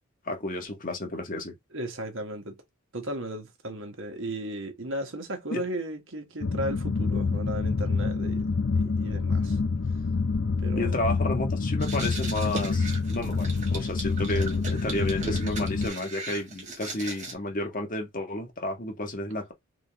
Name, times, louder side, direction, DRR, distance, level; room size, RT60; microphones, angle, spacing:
voice 1, 0.2-1.5 5.5-5.7 9.0-9.1 10.7-19.5, left 1 dB, 40° left, 1.6 m, -32 dB
voice 2, 1.7-2.6 2.9-8.4 8.7-9.6 10.6-10.9, right 1 dB, 60° right, 1.4 m, -35 dB
sound 1, 6.4-15.9, left 4 dB, 55° left, 0.6 m, -27 dB
sound 2, 11.8-17.3, right 3 dB, 35° right, 1.8 m, -39 dB
3.9 x 3.7 x 3.5 m
head